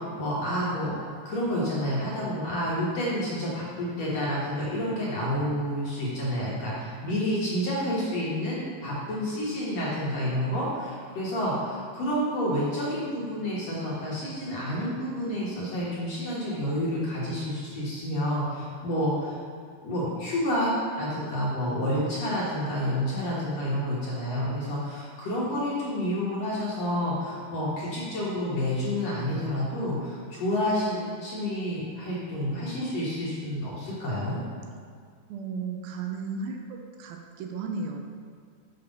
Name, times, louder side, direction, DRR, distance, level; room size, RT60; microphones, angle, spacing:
voice 1, 0.0-19.3 19.8-34.4, equal, 55° left, -6 dB, 2.3 m, -29 dB
voice 2, 35.3-36.6 37.0-38.1, right 4 dB, 85° right, 3 dB, 2.4 m, -34 dB
6.9 x 6.8 x 5.4 m, 2.1 s
omnidirectional pair, 4.4 m